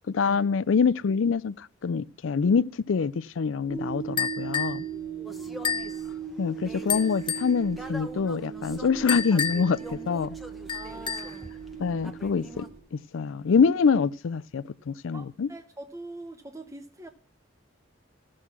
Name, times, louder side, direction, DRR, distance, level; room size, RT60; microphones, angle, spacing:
voice 1, 0.1-4.8 6.4-9.8 10.1-10.3 11.8-15.5, left 5 dB, 85° left, 0.4 m, -25 dB
sound 1, 3.7-12.8, right 8 dB, 80° right, 3.4 m, -38 dB
sound 2, 4.2-4.8 5.6-6.0 6.9-7.5 9.1-9.8 10.7-11.4, left 7 dB, 25° left, 0.6 m, -30 dB
voice 2, 5.2-5.6 10.7-11.5 15.1-17.1, right 2 dB, 15° right, 0.8 m, -44 dB
sound 3, 5.3-12.7, equal, ahead, 1.0 m, -45 dB
15.0 x 6.4 x 5.8 m
head